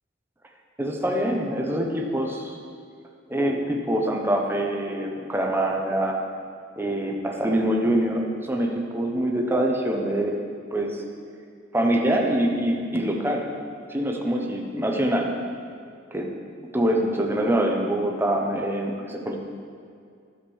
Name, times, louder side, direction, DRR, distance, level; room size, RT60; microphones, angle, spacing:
voice 1, 0.8-2.6 3.3-6.2 6.8-10.3 10.7-11.0 11.7-13.4 13.9-15.3 16.1-16.3 16.7-19.4, right 1 dB, 10° right, 1 dB, 0.9 m, -24 dB
12.0 x 5.2 x 7.1 m, 2.3 s
head